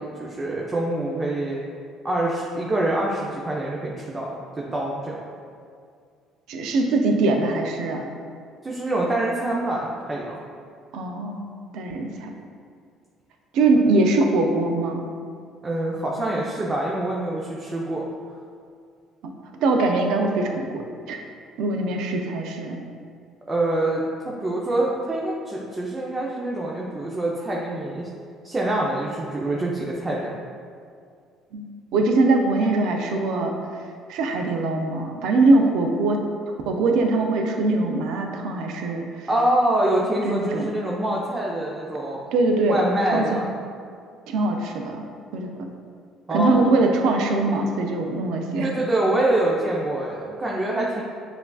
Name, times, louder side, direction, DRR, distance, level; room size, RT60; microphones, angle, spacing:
voice 1, 0.0-1.6 2.0-4.3 4.6-5.2 8.6-10.4 15.6-18.1 23.5-28.1 28.4-30.4 39.3-42.2 42.7-43.5 46.3-46.7 48.6-51.0, right 1 dB, 25° right, -3 dB, 0.6 m, -25 dB
voice 2, 6.5-8.1 10.9-11.5 11.7-12.3 13.5-15.1 19.6-21.2 21.6-22.8 31.5-33.5 34.1-36.2 36.7-39.3 40.2-40.6 42.3-42.8 43.1-43.4 44.3-45.0 45.3-45.7 46.3-48.7, right 2 dB, 70° right, 3 dB, 0.4 m, -22 dB
6.7 x 2.5 x 2.3 m, 2.2 s
hypercardioid pair, 65°, 0 cm